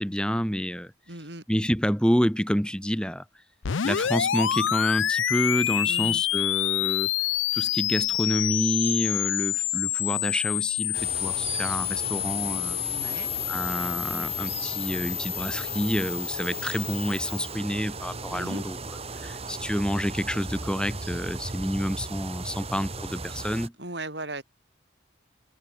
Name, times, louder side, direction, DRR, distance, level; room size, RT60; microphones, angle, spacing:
voice 1, 0.0-0.9 1.5-3.2 3.8-7.1 7.5-12.8 13.5-23.7, equal, 5° left, 4.6 m, -28 dB
voice 2, 1.1-1.4 5.9-6.2 12.9-13.3 18.3-18.6 23.8-24.4, right 2 dB, 60° right, 7.4 m, -37 dB
sound 1, 3.6-17.5, left 12 dB, 85° left, 0.6 m, -28 dB
sound 2, 10.9-23.7, right 3 dB, 30° right, 2.1 m, -37 dB
head